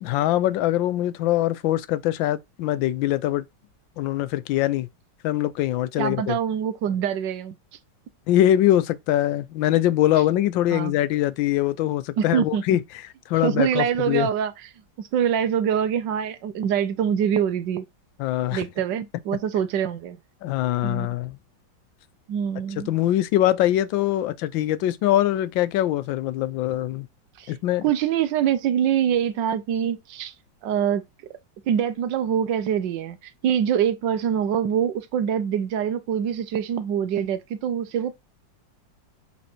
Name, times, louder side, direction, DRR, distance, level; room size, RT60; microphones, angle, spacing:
voice 1, 0.0-3.4 4.0-4.9 5.2-6.4 8.3-12.8 13.3-14.3 18.2-18.6 20.4-21.4 22.8-27.1 27.5-27.9, left 13 dB, 90° left, 1.4 m, -23 dB
voice 2, 6.0-7.5 10.7-10.9 12.2-12.6 13.4-14.5 15.1-17.8 18.5-20.2 20.8-21.1 22.3-22.9 27.4-27.5 27.8-30.3 30.6-31.0 31.7-33.2 33.4-38.1, right 9 dB, 75° right, 1.4 m, -24 dB
7.4 x 3.5 x 4.3 m
omnidirectional pair, 2.0 m